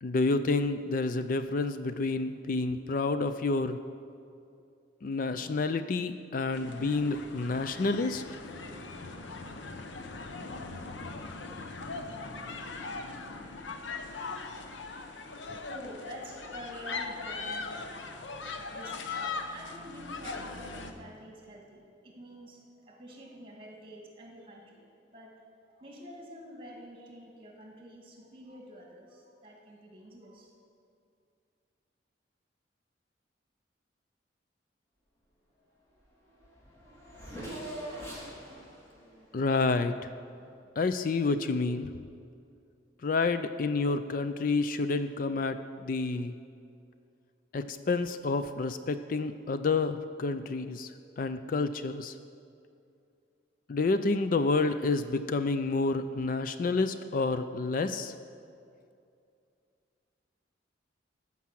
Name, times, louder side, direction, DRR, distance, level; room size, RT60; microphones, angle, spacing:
voice 1, 0.0-3.8 5.0-8.2 39.3-39.9 40.8-41.9 43.0-46.3 47.5-50.9 51.2-52.1 53.7-58.1, left 3 dB, 45° left, 10 dB, 0.4 m, -29 dB
sound 1, 6.5-20.9, left 3 dB, 80° left, 0.9 m, -40 dB
voice 2, 15.2-17.8 18.0-18.2 18.5-25.3 25.7-30.6, equal, 30° right, 0 dB, 2.2 m, -48 dB
Race car auto racing / Accelerating revving vroom, 36.0-36.1 36.3-40.3, right 1 dB, 15° left, 2.6 m, -44 dB
14.0 x 6.0 x 7.5 m, 2.4 s
head